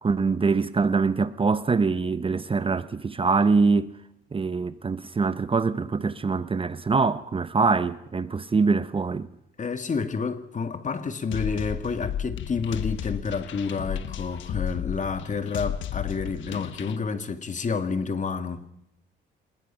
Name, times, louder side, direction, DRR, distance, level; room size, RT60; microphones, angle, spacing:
voice 1, 0.0-3.9 4.3-9.3, right 4 dB, 25° right, 0.9 m, -24 dB
voice 2, 9.6-18.6, left 5 dB, 40° left, 2.1 m, -29 dB
sound 1, 11.3-17.0, left 9 dB, 75° left, 1.4 m, -33 dB
26.0 x 21.0 x 5.7 m
cardioid pair, 90°, 20 cm